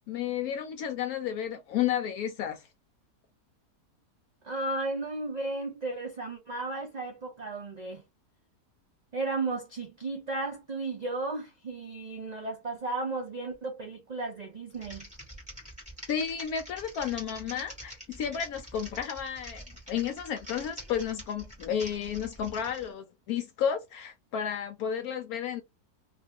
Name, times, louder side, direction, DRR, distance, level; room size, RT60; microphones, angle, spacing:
voice 1, 0.1-2.7 16.1-25.6, left 8 dB, 70° left, 1.0 m, -32 dB
voice 2, 4.4-8.0 9.1-15.1, right 3 dB, 65° right, 0.4 m, -34 dB
Typing, 14.7-22.9, equal, 5° right, 1.5 m, -46 dB
2.8 x 2.8 x 3.5 m
omnidirectional pair, 1.7 m